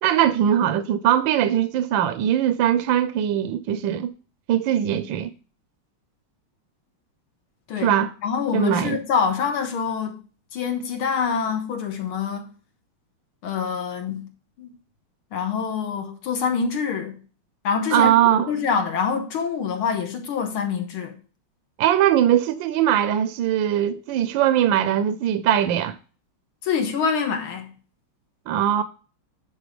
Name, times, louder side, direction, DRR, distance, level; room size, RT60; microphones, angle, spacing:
voice 1, 0.0-4.1 4.5-5.3 7.8-8.1 8.5-9.0 17.9-18.5 21.8-26.0 28.5-28.8, right 11 dB, 75° right, 1.3 m, -20 dB
voice 2, 8.2-10.2 10.5-12.5 13.4-14.3 14.6-14.7 15.3-17.2 17.6-18.1 18.5-21.2 26.6-27.7, left 6 dB, 80° left, 2.2 m, -25 dB
10.0 x 3.9 x 5.1 m
omnidirectional pair, 2.3 m